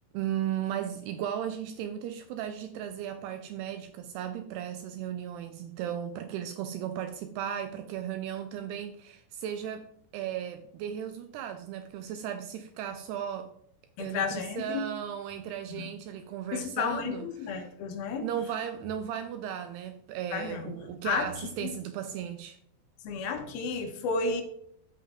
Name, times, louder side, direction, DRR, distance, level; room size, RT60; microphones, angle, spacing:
voice 1, 0.1-9.9 10.1-13.5 14.0-17.7 18.2-22.6, right 9 dB, 80° right, 8 dB, 2.5 m, -36 dB
voice 2, 14.0-14.9 15.7-15.8 16.5-18.3 20.3-20.7 21.0-21.3 21.6-21.7 23.0-24.4, left 5 dB, 75° left, 6 dB, 2.5 m, -32 dB
10.5 x 7.6 x 3.6 m, 0.70 s
omnidirectional pair, 5.0 m